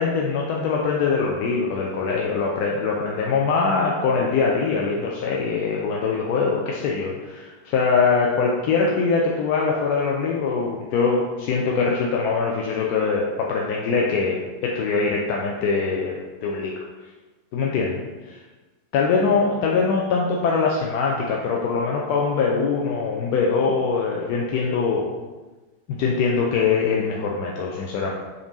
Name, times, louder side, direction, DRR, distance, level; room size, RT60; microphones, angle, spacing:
voice 1, 0.0-16.8 17.5-18.0 18.9-25.1 25.9-28.1, left 5 dB, 45° left, -2 dB, 0.5 m, -23 dB
5.1 x 2.5 x 3.0 m, 1.2 s
figure-of-eight pair, 90°, 0 cm